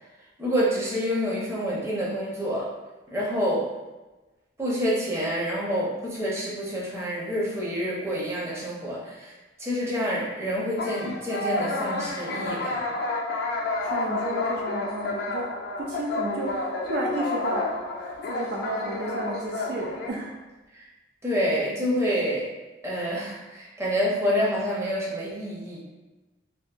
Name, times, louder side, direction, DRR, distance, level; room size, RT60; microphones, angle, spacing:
voice 1, 0.4-2.7 3.1-3.7 4.6-9.3 9.6-12.8 20.7-20.9 21.2-22.5 22.8-25.8, equal, 15° right, -6 dB, 0.6 m, -27 dB
sound 1, 10.8-20.1, left 2 dB, 55° left, 0.3 m, -30 dB
voice 2, 13.8-18.0 18.2-20.4, right 1 dB, 60° right, -1 dB, 0.3 m, -32 dB
2.7 x 2.5 x 2.3 m, 1.1 s
head